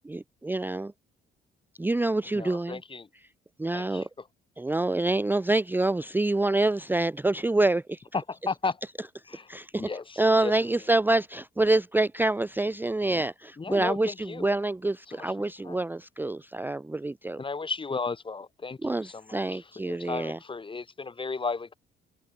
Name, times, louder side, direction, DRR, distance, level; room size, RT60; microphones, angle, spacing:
voice 1, 0.0-0.9 1.8-2.8 3.6-4.1 4.6-8.0 9.5-9.9 10.2-17.4 18.8-20.4, right 2 dB, 10° right, 0.6 m, -26 dB
voice 2, 2.3-3.1 3.7-4.1 8.1-8.8 9.3-9.5 9.8-10.5 13.6-14.5 15.1-15.8 17.4-21.7, left 4 dB, 25° left, 1.4 m, -34 dB
cardioid pair, 90°, 20 cm